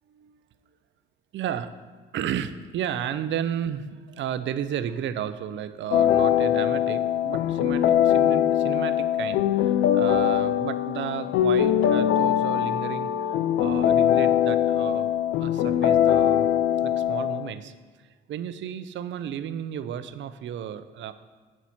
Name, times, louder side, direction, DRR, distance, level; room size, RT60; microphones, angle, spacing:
voice 1, 1.3-1.7 2.1-16.5 16.8-21.1, right 9 dB, 70° right, 12 dB, 0.6 m, -33 dB
sound 1, 5.9-17.5, left 10 dB, 85° left, 0.5 m, -22 dB
7.9 x 7.4 x 4.2 m, 1.5 s
cardioid pair, 90°, 20 cm